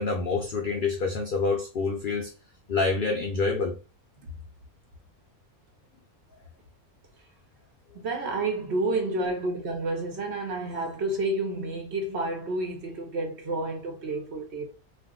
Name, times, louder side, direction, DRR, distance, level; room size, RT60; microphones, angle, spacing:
voice 1, 0.0-2.3 2.7-3.7, left 4 dB, 85° left, 0.4 m, -27 dB
voice 2, 7.9-14.6, right 2 dB, 55° right, 0.8 m, -30 dB
2.5 x 2.1 x 3.6 m
omnidirectional pair, 1.5 m